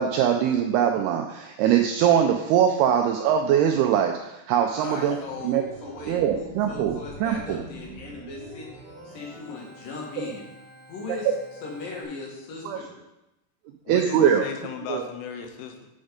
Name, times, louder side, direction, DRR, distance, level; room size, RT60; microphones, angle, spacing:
voice 1, 0.0-4.1 4.5-5.2 5.4-5.6 6.1-7.6 10.2-10.3 11.3-11.4 12.7-12.8 13.9-14.5 14.9-15.0, right 9 dB, 85° right, 4 dB, 2.3 m, -22 dB
voice 2, 4.7-8.7 9.1-10.5 10.9-11.3 11.6-12.9, left 3 dB, 60° left, -2 dB, 2.9 m, -38 dB
Organ, 4.7-12.0, right 2 dB, 40° right, 1.6 m, -45 dB
voice 3, 13.9-15.9, left 7 dB, 80° left, 5 dB, 3.0 m, -36 dB
7.9 x 5.4 x 5.0 m, 0.93 s
omnidirectional pair, 5.1 m